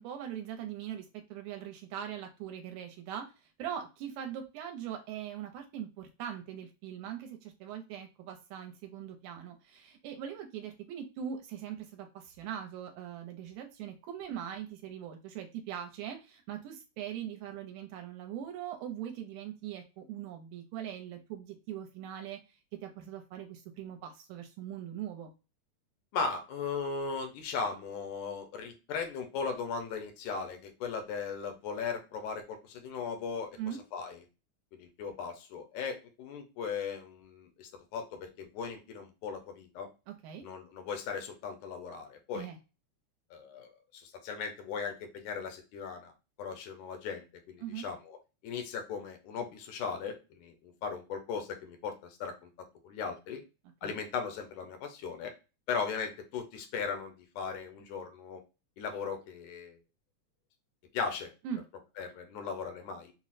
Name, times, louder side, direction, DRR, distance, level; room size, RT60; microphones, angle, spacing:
voice 1, 0.0-22.4 22.8-25.3 33.6-33.8 40.1-40.4 42.3-42.6 47.6-47.9 53.8-54.0 61.4-61.6, right 9 dB, 80° right, 4 dB, 1.9 m, -41 dB
voice 2, 26.1-34.2 34.7-39.9 40.4-42.5 43.3-46.1 46.4-48.2 48.4-52.5 52.8-53.4 53.8-55.3 55.7-58.4 58.8-59.8 60.9-61.3 62.0-63.1, left 5 dB, 85° left, 5 dB, 2.3 m, -38 dB
5.9 x 2.0 x 2.4 m, 0.29 s
omnidirectional pair, 3.4 m